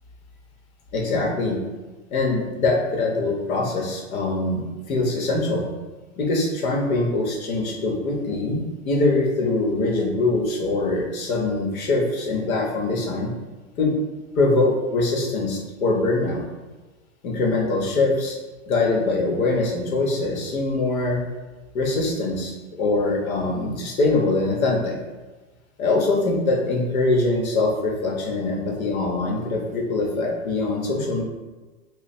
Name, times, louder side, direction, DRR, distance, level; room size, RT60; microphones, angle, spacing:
voice 1, 0.9-1.6 2.1-4.6 4.9-5.7 6.2-13.3 13.8-13.9 14.4-16.4 17.2-18.4 18.7-21.2 21.7-24.9 25.8-31.2, left 2 dB, 75° left, 0 dB, 1.1 m, -23 dB
3.1 x 2.2 x 4.2 m, 1.2 s
hypercardioid pair, 120°, 42 cm